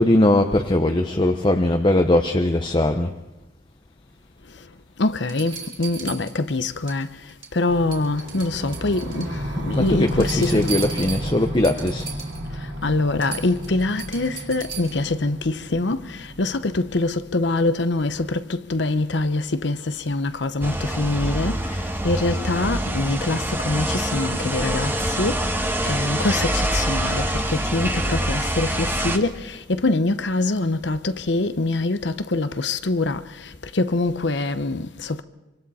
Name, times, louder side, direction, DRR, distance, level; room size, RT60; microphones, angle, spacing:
voice 1, 0.0-3.1 9.7-12.1, left 1 dB, 25° left, 0.8 m, -20 dB
sound 1, 4.6-4.7 5.3-7.0 7.3-7.6 7.9-9.3 9.7-12.5 12.8-12.9 13.2-15.1 16.8-16.9, right 6 dB, 25° right, 3.2 m, -36 dB
voice 2, 5.0-7.1 7.5-10.7 12.8-21.6 22.0-24.9 25.2-25.4 25.9-33.2 33.7-35.2, left 2 dB, 65° left, 0.9 m, -24 dB
sound 2, 7.7-17.7, equal, 60° right, 2.9 m, -32 dB
sound 3, 20.6-29.2, right 1 dB, 10° right, 1.3 m, -25 dB
25.5 x 25.0 x 4.2 m
head